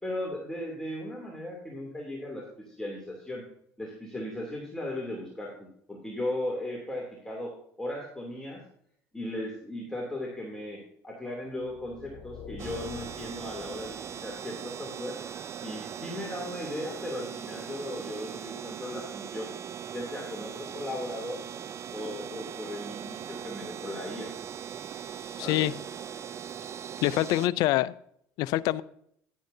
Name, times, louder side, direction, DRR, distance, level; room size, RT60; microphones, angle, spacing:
voice 1, 0.0-3.4 3.8-8.6 9.1-15.2 15.6-19.5 19.9-21.4 21.9-24.3 25.4-25.7, left 1 dB, 10° left, -2 dB, 2.9 m, -37 dB
sound 1, 11.6-14.5, left 7 dB, 50° left, 2.5 m, -47 dB
sound 2, 12.6-27.5, right 8 dB, 45° right, 0.6 m, -40 dB
voice 2, 25.4-25.7 27.0-27.9 28.4-28.8, left 15 dB, 75° left, 19 dB, 0.5 m, -25 dB
11.0 x 10.0 x 2.8 m, 0.68 s
supercardioid pair, 80°, 7 cm